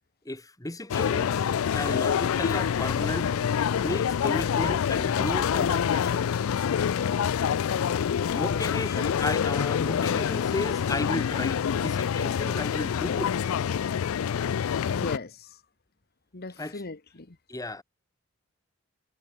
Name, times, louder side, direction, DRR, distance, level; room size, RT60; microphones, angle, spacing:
voice 1, 0.2-1.5 1.7-3.3 3.8-6.3 8.3-13.4 16.6-16.8 17.5-17.8, left 1 dB, 15° left, 1.6 m, -34 dB
sound 1, 0.9-15.2, left 8 dB, 85° left, 0.4 m, -26 dB
Boom, 1.4-6.7, right 1 dB, 20° right, 3.7 m, -49 dB
voice 2, 8.3-8.8 14.9-15.6 16.3-17.4, left 3 dB, 50° left, 1.3 m, -38 dB
head